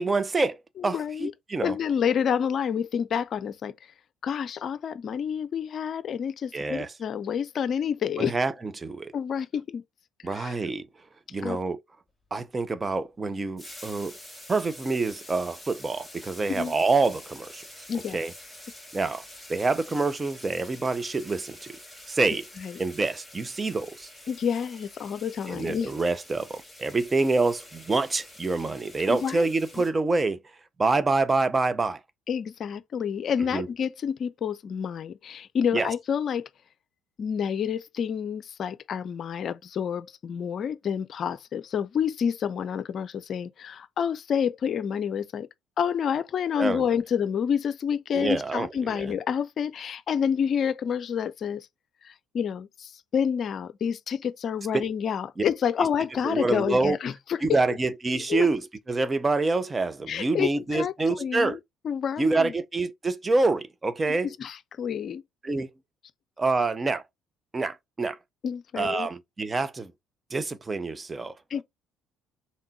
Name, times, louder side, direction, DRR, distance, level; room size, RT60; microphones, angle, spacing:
voice 1, 0.0-0.6 0.8-1.8 6.5-6.9 8.2-9.1 10.2-10.9 11.3-11.8 12.3-14.2 14.5-17.6 18.1-18.3 18.9-19.2 19.5-21.7 22.1-22.5 22.8-24.1 25.5-30.4 30.8-32.0 33.5-33.7 35.7-35.9 46.6-46.8 48.1-49.1 54.7-54.8 56.2-57.0 57.4-61.6 62.2-64.3 65.4-65.7 66.4-67.0 67.5-68.2 68.8-69.9 70.3-71.3, right 3 dB, 25° right, 0.6 m, -26 dB
voice 2, 0.8-1.3 1.6-3.7 4.2-8.4 9.1-9.8 10.3-10.6 11.4-11.6 16.5-16.7 17.9-18.2 22.6-22.8 24.3-25.9 29.1-29.5 32.3-36.5 37.2-45.5 45.8-51.7 52.0-57.6 58.1-58.5 60.1-61.6 61.8-62.5 64.1-65.2 68.4-69.1 71.5-71.6, left 7 dB, 50° left, 0.5 m, -29 dB
sound 1, 13.6-29.9, left 1 dB, 5° right, 2.0 m, -47 dB
4.2 x 3.6 x 2.7 m
hypercardioid pair, 60°, 0 cm